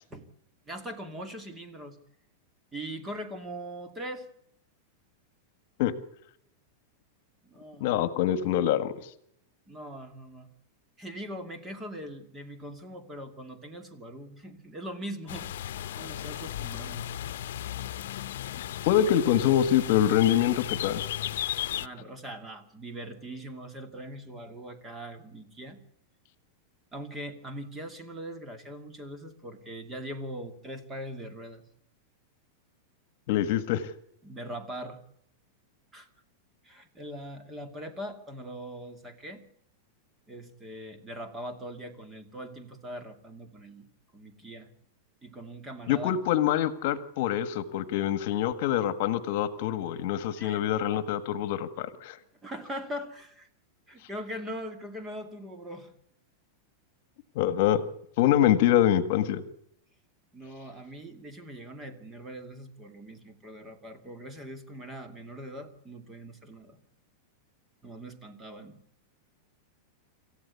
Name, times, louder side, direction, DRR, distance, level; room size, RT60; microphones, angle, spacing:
voice 1, 0.7-2.0 2.7-4.3 7.4-8.0 9.7-10.5 11.0-15.5 15.9-17.1 21.8-25.8 26.9-31.6 34.2-35.0 35.9-36.1 36.6-39.4 40.3-43.9 44.1-44.7 45.2-46.1 50.4-50.6 50.9-51.0 52.4-53.5 53.9-55.9 60.3-66.8 67.8-68.8, equal, 10° right, 7 dB, 2.5 m, -41 dB
voice 2, 7.8-8.9 18.8-21.0 33.3-33.9 45.9-52.2 57.3-57.8 58.2-59.4, left 11 dB, 55° left, 13 dB, 1.7 m, -25 dB
sound 1, 15.3-21.9, left 12 dB, 75° left, 0.8 m, -35 dB
27.0 x 15.0 x 8.3 m, 0.70 s
supercardioid pair, 160°, 0 cm